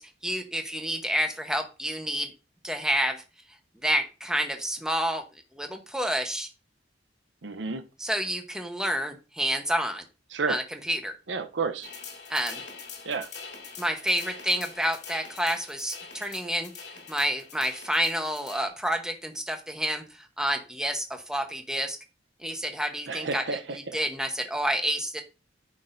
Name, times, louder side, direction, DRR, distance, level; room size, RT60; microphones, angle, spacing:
voice 1, 0.0-2.3 2.6-3.2 3.8-5.2 5.5-6.5 8.0-10.0 10.5-11.1 12.3-12.6 13.8-20.0 20.4-22.0 22.4-23.4 23.9-25.2, equal, 5° right, 5 dB, 1.0 m, -29 dB
voice 2, 7.4-7.8 10.3-10.6 11.3-11.9 13.0-13.3 23.1-24.0, right 4 dB, 85° right, 9 dB, 0.8 m, -31 dB
sound 1, 11.8-18.7, left 5 dB, 60° left, 2.6 m, -44 dB
9.3 x 6.1 x 2.6 m, 0.31 s
head